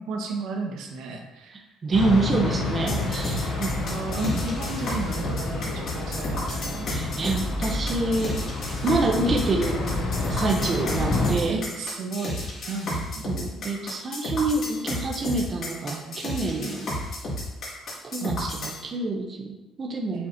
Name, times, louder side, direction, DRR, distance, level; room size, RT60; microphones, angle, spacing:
voice 1, 0.0-1.7 2.4-3.1 3.9-6.9 11.5-13.4 15.2-16.3 18.2-18.8 20.1-20.3, right 3 dB, 85° right, 1 dB, 1.4 m, -34 dB
voice 2, 1.8-3.8 6.9-8.4 8.8-9.8 10.3-11.6 13.2-17.0 18.0-18.5 18.8-20.2, right 2 dB, 25° right, 0 dB, 0.8 m, -27 dB
sound 1, 1.9-11.3, left 3 dB, 80° left, 2.1 m, -29 dB
sound 2, 2.9-18.8, left 1 dB, 45° left, 2.4 m, -32 dB
7.8 x 6.9 x 2.8 m, 1.0 s
cardioid pair, 165°, 0 cm